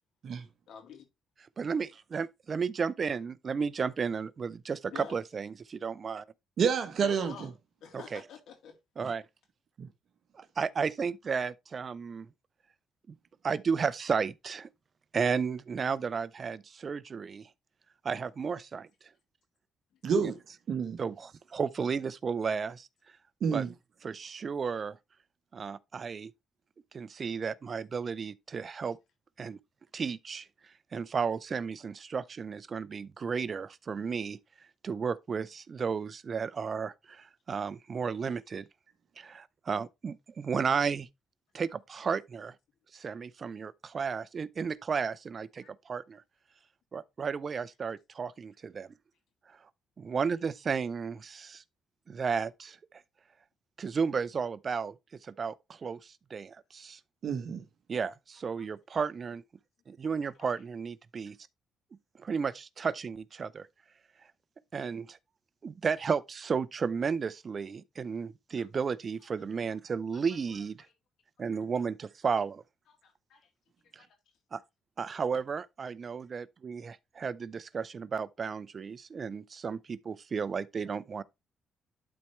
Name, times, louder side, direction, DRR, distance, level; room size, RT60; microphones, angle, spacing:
voice 1, 0.7-1.1 4.9-5.2 7.0-7.5 7.8-8.7 45.6-45.7 68.6-68.7 69.4-69.5 73.0-73.5 74.0-74.1, left 7 dB, 75° left, 3.1 m, -47 dB
voice 2, 1.6-6.2 7.9-8.2 9.0-9.2 10.3-12.3 13.4-14.7 15.1-17.5 18.0-18.9 20.2-20.3 21.0-22.9 23.4-23.7 24.0-25.0 25.5-26.3 26.9-29.0 29.4-29.6 29.9-30.5 30.9-34.4 34.8-38.7 39.2-41.1 41.5-42.5 42.9-46.2 46.9-48.9 50.0-51.6 52.1-52.8 53.8-55.0 55.2-57.0 57.9-59.4 59.9-61.4 62.2-63.7 64.7-65.2 65.6-70.8 71.4-72.6 73.9-74.1 74.5-74.6 75.0-81.2, right 5 dB, 45° right, 0.6 m, -33 dB
voice 3, 6.6-7.3 9.8-9.9 20.0-20.3 20.7-21.0 23.4-23.7 57.2-57.6, right 6 dB, 60° right, 1.1 m, -28 dB
12.0 x 4.4 x 3.1 m
cardioid pair, 90°, 0 cm